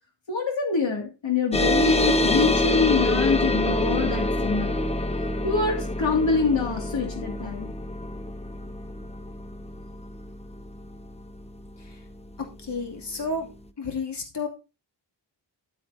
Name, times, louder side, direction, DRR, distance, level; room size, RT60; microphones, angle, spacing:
voice 1, 0.3-4.8 5.4-7.7, left 5 dB, 90° left, 2 dB, 2.4 m, -25 dB
sound 1, 1.5-12.4, left 1 dB, 15° left, 0.6 m, -26 dB
voice 2, 12.6-13.5 13.8-14.5, left 3 dB, 65° left, 0 dB, 2.6 m, -31 dB
12.5 x 8.4 x 2.7 m, 0.29 s
wide cardioid pair, 115°, 44 cm